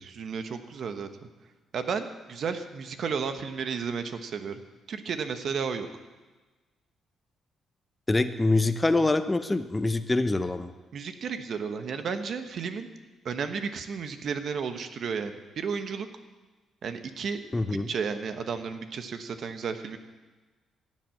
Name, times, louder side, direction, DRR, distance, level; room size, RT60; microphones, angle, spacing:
voice 1, 0.0-1.3 1.7-4.6 4.9-5.9 10.9-12.9 13.2-16.1 16.8-17.4 17.7-20.0, right 6 dB, 60° right, 8 dB, 1.2 m, -33 dB
voice 2, 8.1-10.7 17.5-17.9, left 2 dB, 15° left, 10 dB, 0.8 m, -25 dB
16.0 x 7.6 x 7.7 m, 1.3 s
cardioid pair, 90°, 0 cm